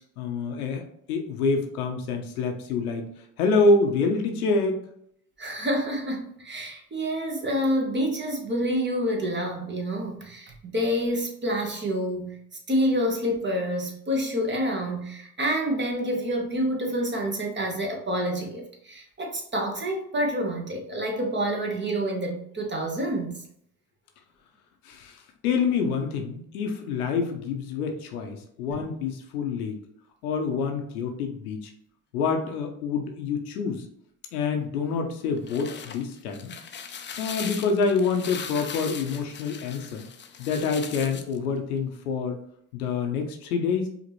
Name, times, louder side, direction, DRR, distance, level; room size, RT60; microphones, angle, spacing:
voice 1, 0.2-0.8 1.1-3.0 3.4-4.8 24.8-29.8 30.2-31.7 32.1-33.9 34.3-36.5 37.2-40.0 40.4-42.4 42.7-43.9, left 4 dB, 80° left, 4 dB, 0.8 m, -27 dB
voice 2, 5.4-12.4 12.7-23.4 28.7-28.8, equal, 25° right, 1 dB, 1.3 m, -28 dB
sound 1, 35.2-41.4, left 7 dB, 25° left, 0.5 m, -39 dB
5.0 x 2.9 x 3.0 m, 0.69 s
hypercardioid pair, 60°, 44 cm